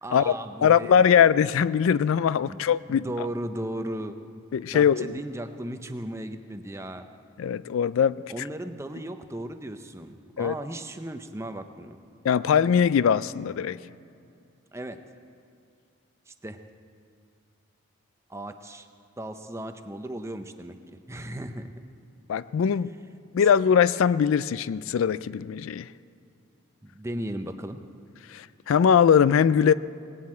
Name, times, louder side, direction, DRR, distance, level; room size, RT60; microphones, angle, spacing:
voice 1, 0.0-1.2 2.5-2.6 2.9-4.2 4.7-7.0 8.3-12.0 14.7-15.0 16.3-16.6 18.3-18.9 19.2-21.7 26.8-27.8, right 1 dB, 15° right, 8 dB, 0.6 m, -36 dB
voice 2, 0.6-3.1 4.5-5.1 7.4-8.2 10.4-10.5 12.2-13.8 22.3-22.9 23.3-25.9 28.3-29.7, left 7 dB, 75° left, 17 dB, 0.3 m, -21 dB
19.0 x 7.4 x 8.5 m, 2.4 s
head